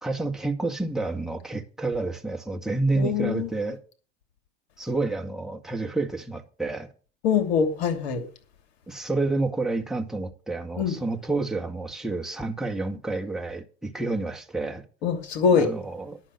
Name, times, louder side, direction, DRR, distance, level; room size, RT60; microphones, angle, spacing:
voice 1, 0.0-3.8 4.8-6.9 8.9-14.8 15.5-16.2, right 3 dB, ahead, 1.8 m, -29 dB
voice 2, 2.9-3.5 7.2-8.2 10.8-11.0 15.0-15.7, left 6 dB, 65° left, 2.8 m, -23 dB
11.0 x 6.1 x 8.2 m
hypercardioid pair, 85°, 33 cm